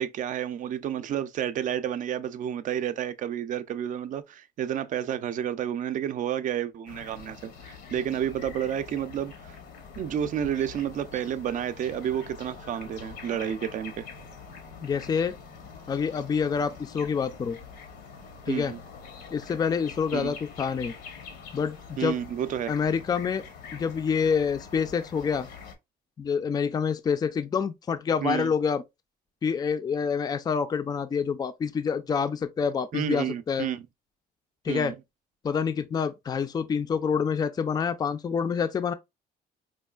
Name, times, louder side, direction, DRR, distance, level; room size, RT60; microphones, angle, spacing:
voice 1, 0.0-9.6 10.0-14.1 18.5-18.8 20.1-20.4 22.0-22.7 28.2-28.5 32.9-33.8 34.7-35.0, right 9 dB, 50° right, 0.4 m, -30 dB
sound 1, 6.9-25.8, left 5 dB, 80° left, 0.9 m, -45 dB
voice 2, 14.8-15.4 15.9-17.6 18.5-18.7 19.3-20.9 21.5-22.2 22.7-23.4 23.7-25.5 26.2-28.8 29.4-33.7 34.6-34.9 35.4-38.9, left 6 dB, 25° left, 0.4 m, -27 dB
4.4 x 2.4 x 2.3 m
cardioid pair, 110°, 17 cm